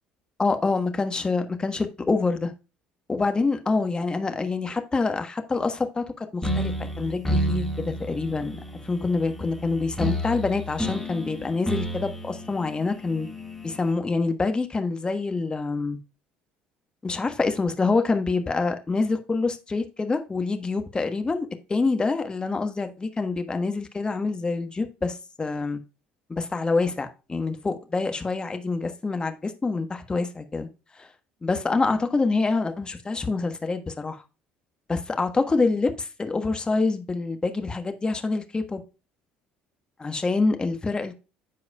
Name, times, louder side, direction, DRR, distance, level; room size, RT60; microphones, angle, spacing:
voice 1, 0.4-2.5 3.1-6.7 7.0-13.3 13.6-16.0 17.0-25.8 26.3-30.7 31.0-31.1 31.4-34.2 34.9-38.8 40.0-41.2, left 3 dB, 20° left, 1.3 m, -26 dB
sound 1, 6.4-13.9, equal, 5° left, 2.4 m, -31 dB
13.0 x 4.7 x 2.3 m
hypercardioid pair, 60°, 4 cm